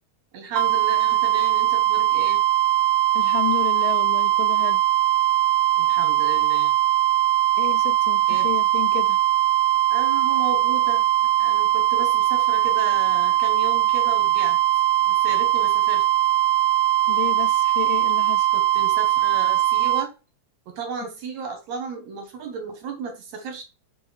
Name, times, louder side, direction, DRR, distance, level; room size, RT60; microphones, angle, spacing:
voice 1, 0.3-2.4 5.8-6.7 8.3-8.5 9.9-14.6 15.1-16.0 18.5-20.1 20.7-23.6, right 4 dB, 65° right, 2.2 m, -34 dB
sound 1, 0.6-20.1, right 13 dB, 85° right, 2.1 m, -20 dB
voice 2, 3.2-4.8 7.6-9.2 17.1-18.5, left 16 dB, 90° left, 2.2 m, -31 dB
5.3 x 3.7 x 5.0 m
omnidirectional pair, 3.8 m